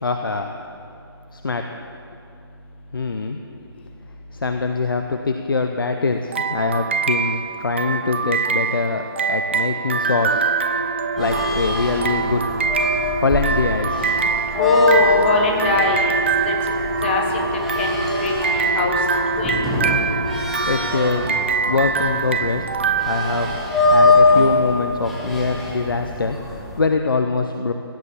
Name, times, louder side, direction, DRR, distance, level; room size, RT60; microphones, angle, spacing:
voice 1, 0.0-0.5 1.3-1.7 2.9-3.4 4.3-10.5 11.2-12.4 13.2-14.2 20.6-21.3 21.6-22.7 23.0-23.6 23.9-27.7, left 3 dB, 60° left, 5 dB, 0.8 m, -23 dB
sound 1, 6.3-24.0, right 5 dB, 30° right, 0.4 m, -24 dB
sound 2, 9.6-22.3, right 1 dB, 85° right, 3.6 m, -29 dB
sound 3, 11.2-26.8, left 2 dB, ahead, 1.2 m, -23 dB
voice 2, 14.5-16.5 17.0-17.2 17.8-18.0 18.2-19.0 19.4-19.6, left 3 dB, 25° left, 1 dB, 1.7 m, -21 dB
16.5 x 11.0 x 7.2 m, 2.6 s
figure-of-eight pair, 150°, 13 cm